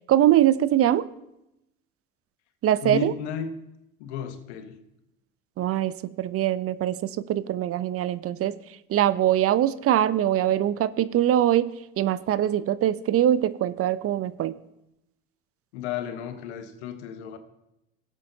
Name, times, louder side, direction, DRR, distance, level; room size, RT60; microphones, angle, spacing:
voice 1, 0.1-1.1 2.6-3.1 5.6-8.6 8.9-14.6, right 12 dB, 45° right, 17 dB, 0.5 m, -23 dB
voice 2, 2.8-3.5 4.0-4.8 15.7-17.4, left 8 dB, 85° left, 9 dB, 1.1 m, -33 dB
17.0 x 8.1 x 2.7 m, 0.87 s
hypercardioid pair, 75°, 33 cm